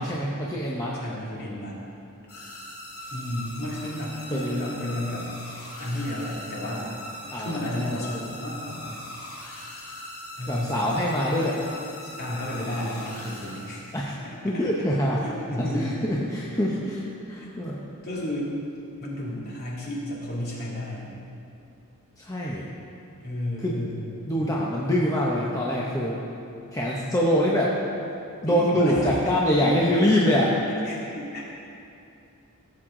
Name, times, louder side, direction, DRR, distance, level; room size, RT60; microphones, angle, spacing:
voice 1, 0.0-1.0 3.0-3.2 4.3-4.8 7.3-8.1 10.5-11.6 13.9-14.1 14.4-15.2 15.6-17.8 19.3-19.5 22.2-22.7 23.6-23.8 24.3-26.2 26.7-27.7 28.4-30.5, equal, 15° left, -5 dB, 0.8 m, -25 dB
voice 2, 1.0-1.8 3.1-5.3 5.8-7.0 7.4-9.0 10.4-10.8 12.2-13.9 14.5-14.6 15.2-16.1 17.4-17.5 18.0-18.6 19.0-21.2 23.2-24.3 28.5-29.3 30.8-31.4, left 1 dB, 45° left, -5 dB, 2.5 m, -32 dB
sound 1, 2.3-14.2, left 1 dB, 75° left, 2.5 m, -41 dB
16.0 x 7.9 x 3.8 m, 2.7 s
head